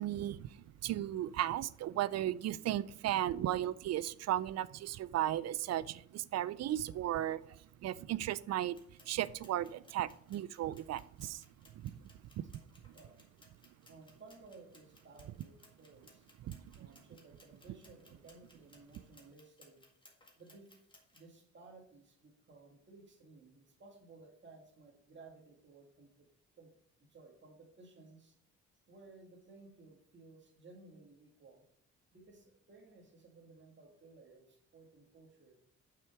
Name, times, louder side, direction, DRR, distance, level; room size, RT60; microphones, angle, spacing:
voice 1, 0.0-8.8 9.1-11.4 11.8-12.0 12.5-12.6 12.9-13.0 16.5-16.8, right 12 dB, 60° right, 18 dB, 0.4 m, -36 dB
sound 1, 8.7-21.4, left 1 dB, 15° left, 1.8 m, -65 dB
voice 2, 13.9-16.3 16.7-19.8 20.4-20.7 21.1-26.3 26.6-26.7 27.1-28.4 28.9-31.6 32.1-35.6, right 3 dB, 40° right, 1 dB, 2.1 m, -58 dB
6.0 x 4.7 x 6.0 m, 0.65 s
cardioid pair, 90°, 30 cm